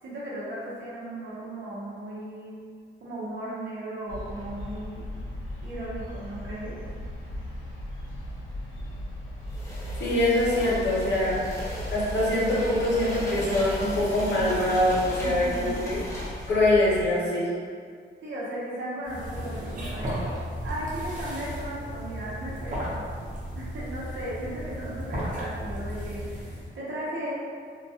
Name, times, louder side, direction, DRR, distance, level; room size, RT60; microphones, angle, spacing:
voice 1, 0.0-2.6 3.0-5.0 5.6-6.8 10.6-10.8 15.2-15.7 18.2-20.1 20.6-23.0 23.5-27.3, right 1 dB, 85° right, -7 dB, 0.7 m, -36 dB
sound 1, 4.1-17.0, left 1 dB, 90° left, 0.4 m, -37 dB
sound 2, 9.5-16.6, equal, 15° left, 0.6 m, -37 dB
voice 2, 10.0-11.4 11.9-16.0 16.5-17.5, left 1 dB, 65° left, -7 dB, 0.8 m, -24 dB
sound 3, 19.0-26.7, equal, 45° right, 0.6 m, -35 dB
2.2 x 2.1 x 2.7 m, 2.1 s
wide cardioid pair, 165°, 19 cm